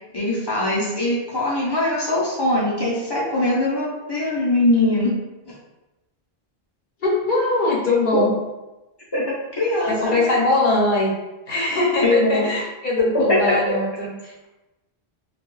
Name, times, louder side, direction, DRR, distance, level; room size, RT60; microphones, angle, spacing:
voice 1, 0.1-5.1 5.5-5.6 9.1-10.4 12.0-12.5 13.1-13.5, left 1 dB, 30° left, -6 dB, 0.5 m, -21 dB
voice 2, 7.0-8.3 9.9-11.1 11.5-14.5, left 2 dB, 55° left, -4 dB, 0.8 m, -21 dB
2.3 x 2.2 x 3.0 m, 1.0 s
omnidirectional pair, 1.0 m